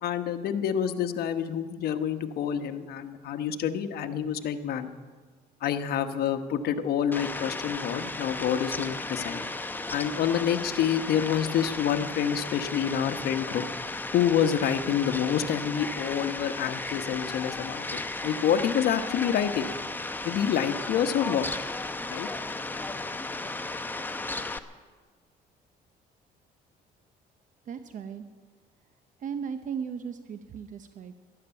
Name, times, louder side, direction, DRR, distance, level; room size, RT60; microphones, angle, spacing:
voice 1, 0.0-4.9 5.6-9.4 9.9-13.6 14.1-19.7 20.2-21.5 22.1-22.3, left 9 dB, 65° left, 7 dB, 1.2 m, -27 dB
Fowl, 7.1-24.6, left 2 dB, 10° left, 0.8 m, -35 dB
voice 2, 27.7-28.2 29.2-31.1, right 7 dB, 50° right, 9 dB, 0.9 m, -36 dB
13.0 x 12.0 x 8.9 m, 1.5 s
cardioid pair, 110°, 17 cm